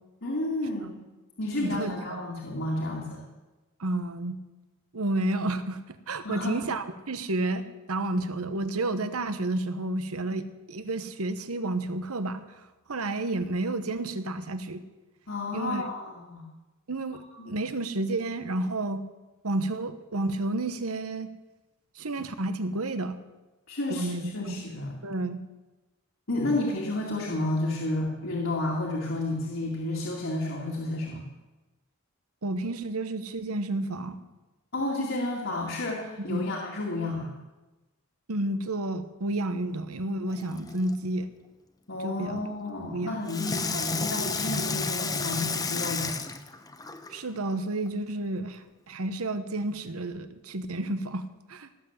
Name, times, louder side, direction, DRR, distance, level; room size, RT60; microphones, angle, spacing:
voice 1, 0.2-1.0 1.4-3.2 6.2-6.5 15.3-16.4 17.3-17.5 23.7-24.9 26.3-31.2 34.7-37.4 41.9-46.1, left 2 dB, 60° left, -3 dB, 2.4 m, -31 dB
voice 2, 1.6-2.2 3.8-4.4 4.9-12.4 12.9-14.8 15.5-15.8 16.9-19.1 19.4-21.3 22.0-23.2 23.9-24.6 25.0-25.5 32.4-34.2 36.2-36.5 38.3-41.3 42.0-42.4 42.8-43.2 47.1-51.7, right 2 dB, 90° right, 11 dB, 1.1 m, -31 dB
Water tap faucet / Sink (filling or washing), 40.3-41.0 43.3-47.2 47.9-48.0, left 4 dB, 15° left, 0.8 m, -32 dB
18.0 x 7.9 x 7.3 m, 1.1 s
head